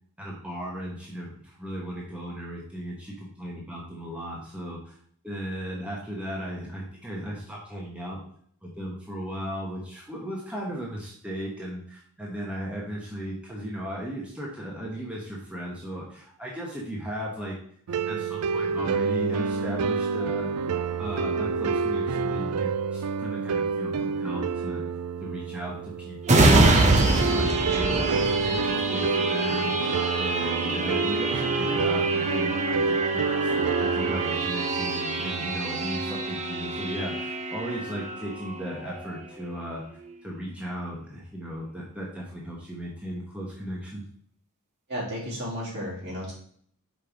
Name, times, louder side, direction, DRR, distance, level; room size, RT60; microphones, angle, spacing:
voice 1, 0.2-5.0 5.2-8.2 8.6-17.5 18.1-20.5 21.0-24.8 25.2-27.5 27.7-44.0, equal, 5° right, -4 dB, 1.0 m, -36 dB
sound 1, 17.9-35.9, right 5 dB, 85° right, 0.4 m, -28 dB
sound 2, 26.2-39.6 40.0-40.2, right 2 dB, 30° right, 0.8 m, -26 dB
voice 2, 44.9-46.3, equal, 55° right, -6 dB, 2.9 m, -33 dB
5.3 x 4.3 x 4.9 m, 0.62 s
head